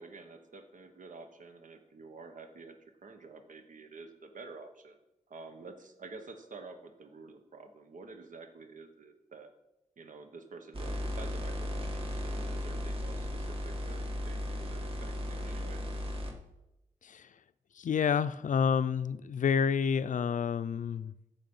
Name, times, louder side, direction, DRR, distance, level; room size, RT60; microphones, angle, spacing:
voice 1, 0.0-5.0 5.3-9.5 10.0-15.8, right 4 dB, 80° right, 6 dB, 1.1 m, -49 dB
sound 1, 10.7-16.3, left 1 dB, 45° right, 1.7 m, -36 dB
voice 2, 17.8-21.1, left 6 dB, 75° left, 14 dB, 0.4 m, -29 dB
14.5 x 5.8 x 5.5 m, 0.91 s
wide cardioid pair, 125°, 13 cm